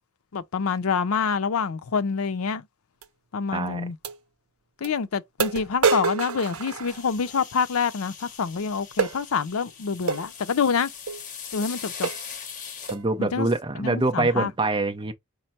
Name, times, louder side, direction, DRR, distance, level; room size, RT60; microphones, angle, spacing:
voice 1, 0.3-2.6 3.3-4.0 4.8-10.9 11.5-12.1 13.2-13.5 13.8-14.5, left 5 dB, 80° left, 0.5 m, -26 dB
sound 1, 3.0-3.1 4.0-4.2 4.8-4.9 5.4-7.4 9.0-9.2 10.1-10.3 11.1-11.2 11.6-11.7 12.0-12.3 12.9-13.1, right 5 dB, 85° right, 0.7 m, -27 dB
voice 2, 3.5-3.8 12.9-15.1, right 2 dB, 25° right, 0.5 m, -25 dB
sound 2, 6.9-13.0, left 7 dB, 35° left, 0.9 m, -41 dB
5.1 x 2.1 x 4.2 m
head